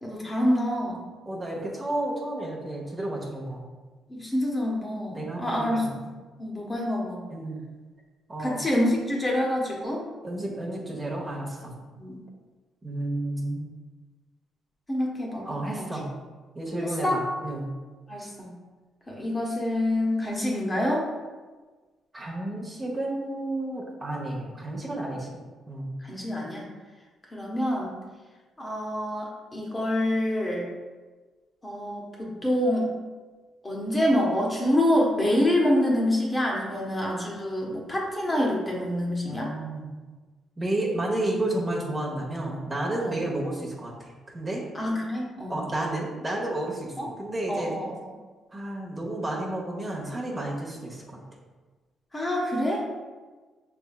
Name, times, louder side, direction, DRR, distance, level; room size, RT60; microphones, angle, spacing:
voice 1, 0.0-1.1 4.1-5.9 6.4-7.2 8.4-10.0 11.9-12.2 14.9-15.6 16.8-17.2 18.1-18.5 19.1-21.1 26.0-26.6 27.3-27.9 28.6-30.6 31.6-32.9 33.6-39.5 43.0-43.2 44.7-45.6 47.0-47.1 47.5-47.9 52.1-52.9, left 1 dB, 20° left, -3 dB, 1.0 m, -26 dB
voice 2, 1.2-3.6 5.1-6.0 6.6-6.8 7.3-7.6 8.3-8.7 10.2-11.8 12.8-13.7 15.4-16.1 16.5-17.7 22.1-25.9 39.2-40.0 40.6-44.7 45.5-47.8 48.5-51.2, right 1 dB, 25° right, -2 dB, 0.9 m, -31 dB
5.4 x 3.4 x 2.3 m, 1.3 s
cardioid pair, 90°, 0 cm